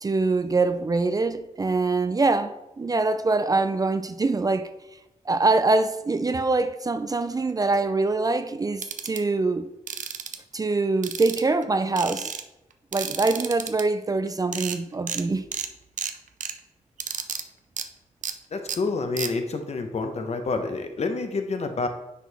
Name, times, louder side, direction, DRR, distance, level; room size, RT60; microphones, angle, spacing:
voice 1, 0.0-4.7 5.3-9.7 10.5-12.3 12.9-15.5, right 3 dB, 30° right, 0.4 m, -24 dB
sound 1, 8.8-9.2 9.9-10.4 11.0-11.6 12.0-12.4 12.9-13.8 14.3-14.4 14.5-14.8 15.1-15.2 15.5-15.7 16.0-16.5 17.0-17.4 17.8-17.9 18.2-18.3 18.7-18.8 19.2-19.3, right 7 dB, 80° right, 0.5 m, -32 dB
voice 2, 18.5-21.9, left 3 dB, 55° left, 0.9 m, -28 dB
9.9 x 4.7 x 3.4 m
wide cardioid pair, 105°, 13 cm